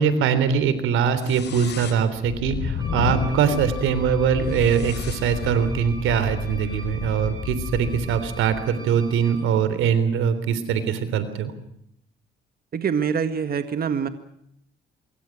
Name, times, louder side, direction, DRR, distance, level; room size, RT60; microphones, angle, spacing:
voice 1, 0.0-11.5, right 7 dB, 90° right, 13 dB, 3.6 m, -22 dB
sound 1, 1.2-8.7, left 6 dB, 60° left, 4.8 m, -32 dB
Wind instrument woodwind instrument, 2.8-9.6, right 1 dB, 20° right, 8.0 m, -43 dB
voice 2, 3.3-3.6 12.7-14.1, right 7 dB, 50° right, 9 dB, 1.9 m, -25 dB
25.5 x 23.0 x 6.1 m, 0.75 s
cardioid pair, 90°, 20 cm